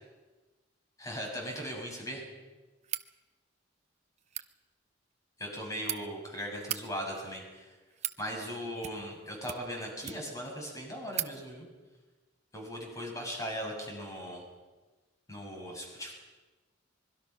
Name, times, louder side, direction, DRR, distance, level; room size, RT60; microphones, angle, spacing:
voice 1, 1.0-2.2 5.4-7.7 8.2-11.6 12.5-14.4 15.3-16.1, equal, 20° left, 0 dB, 6.9 m, -38 dB
sound 1, 2.8-3.1 4.2-4.5 5.4-6.0 6.5-6.8 7.6-8.2 8.8-9.2 9.4-10.4 10.7-10.8 11.1-11.3, right 11 dB, 35° right, 0.8 m, -37 dB
25.0 x 22.5 x 6.0 m, 1.2 s
head